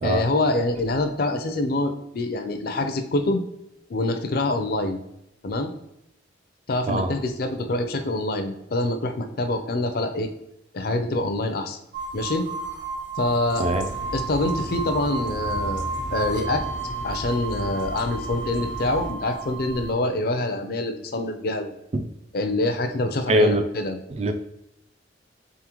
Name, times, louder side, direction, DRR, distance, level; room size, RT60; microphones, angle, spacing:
voice 1, 0.0-3.4 3.9-5.0 5.4-5.7 6.7-10.3 10.7-11.8 12.1-12.5 13.2-13.7 14.1-15.8 16.1-16.6 17.0-21.8 22.3-24.0, left 2 dB, 50° left, 8 dB, 0.5 m, -25 dB
sound 1, 11.9-19.9, right 4 dB, 70° right, 0.8 m, -32 dB
sound 2, 13.5-19.1, left 1 dB, 80° left, 0.9 m, -36 dB
voice 2, 23.3-23.6 24.1-24.3, right 1 dB, 35° right, 8 dB, 0.3 m, -22 dB
3.7 x 3.7 x 3.0 m, 0.83 s
head